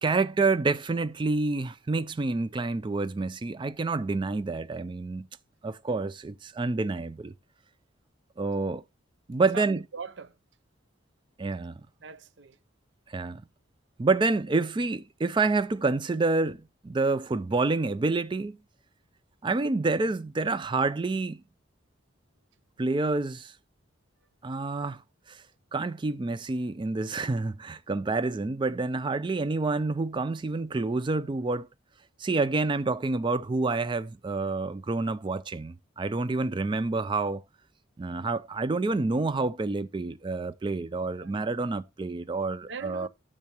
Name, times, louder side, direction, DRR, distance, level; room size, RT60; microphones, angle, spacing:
voice 1, 0.0-5.3 5.6-7.3 8.4-8.8 9.3-9.8 11.4-11.8 13.1-13.4 14.0-18.5 19.4-21.4 22.8-23.5 24.4-25.0 25.3-25.4 25.7-31.7 32.2-37.4 38.0-43.1, right 3 dB, 25° right, 0.3 m, -28 dB
voice 2, 9.5-10.4 12.0-12.6 41.1-41.4 42.6-43.1, right 5 dB, 65° right, 0.6 m, -41 dB
10.5 x 6.6 x 2.9 m
head